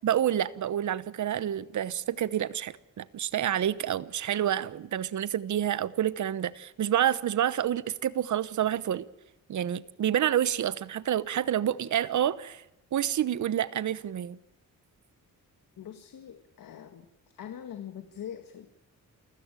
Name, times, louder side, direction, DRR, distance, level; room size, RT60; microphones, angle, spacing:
voice 1, 0.0-9.1 9.5-12.6 12.9-14.4, right 10 dB, 60° right, 1.0 m, -28 dB
voice 2, 15.8-17.1 17.3-18.7, left 9 dB, 80° left, 1.8 m, -42 dB
28.0 x 15.5 x 9.0 m
wide cardioid pair, 145°, 33 cm